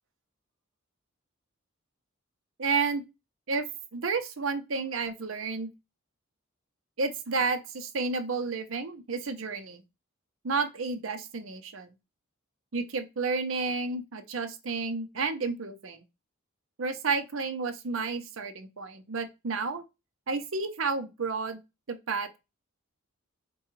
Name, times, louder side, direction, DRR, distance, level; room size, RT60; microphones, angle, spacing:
voice 1, 2.6-3.0 3.5-3.7 3.9-5.7 7.0-9.8 10.4-11.9 12.7-16.0 16.8-19.8 20.3-21.6 21.9-22.4, right 4 dB, 70° right, 0.7 m, -31 dB
4.7 x 2.3 x 3.0 m
head